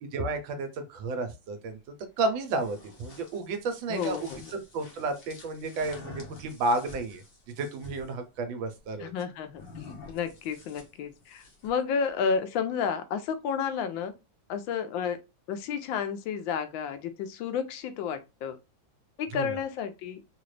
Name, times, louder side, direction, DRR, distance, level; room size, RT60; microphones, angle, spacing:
voice 1, 0.0-1.8 2.2-7.2 7.6-9.1 19.3-19.5, right 3 dB, 75° right, 1.5 m, -32 dB
sound 1, 2.3-8.1 9.5-11.8, left 2 dB, 40° left, 0.9 m, -48 dB
voice 2, 3.9-4.5 9.0-14.1 14.5-15.2 15.5-18.6 19.2-20.2, left 6 dB, 80° left, 1.3 m, -31 dB
3.9 x 2.4 x 3.2 m
omnidirectional pair, 2.1 m